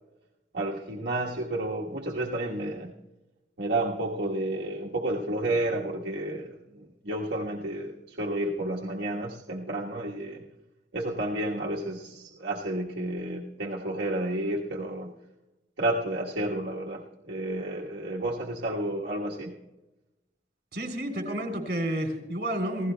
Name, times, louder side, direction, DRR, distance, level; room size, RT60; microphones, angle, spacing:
voice 1, 0.5-2.9 3.6-10.4 10.9-15.1 15.8-19.6, right 1 dB, 85° right, -4 dB, 1.3 m, -31 dB
voice 2, 20.7-22.9, right 1 dB, 65° right, 4 dB, 3.2 m, -30 dB
29.0 x 16.0 x 2.2 m, 1.0 s
head